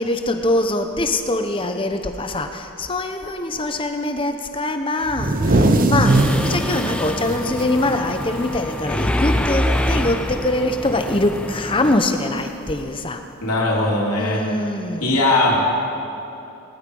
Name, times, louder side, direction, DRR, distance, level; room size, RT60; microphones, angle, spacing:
voice 1, 0.0-13.2 14.2-15.2, left 2 dB, 25° left, 6 dB, 0.8 m, -23 dB
sound 1, 5.1-8.8 9.1-9.3 9.7-10.1 11.2-11.3 12.4-12.5, right 2 dB, 40° right, 0.8 m, -20 dB
Mechanisms, 6.0-12.0, left 1 dB, 5° left, 0.5 m, -25 dB
voice 2, 13.4-14.4 15.0-15.6, left 2 dB, 80° left, -3 dB, 3.1 m, -19 dB
19.0 x 11.5 x 5.4 m, 2.9 s
head